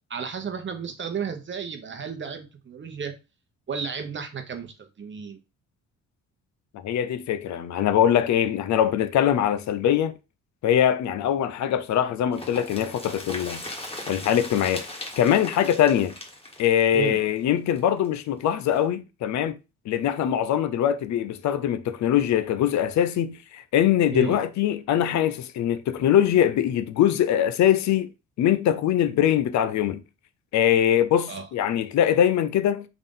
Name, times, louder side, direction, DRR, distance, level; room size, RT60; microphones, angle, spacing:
voice 1, 0.1-3.1 3.7-5.4 16.9-17.2 24.1-24.4 31.3-31.5, right 6 dB, 40° right, 0.9 m, -33 dB
voice 2, 6.8-10.1 10.6-13.6 14.1-14.9 15.2-16.1 16.6-19.6 19.9-28.1 28.4-30.0 30.5-32.9, left 10 dB, 65° left, 0.5 m, -22 dB
sound 1, 12.3-18.1 18.4-18.5 18.7-18.8, left 1 dB, 20° left, 1.4 m, -38 dB
3.7 x 2.5 x 3.7 m
cardioid pair, 90°, 30 cm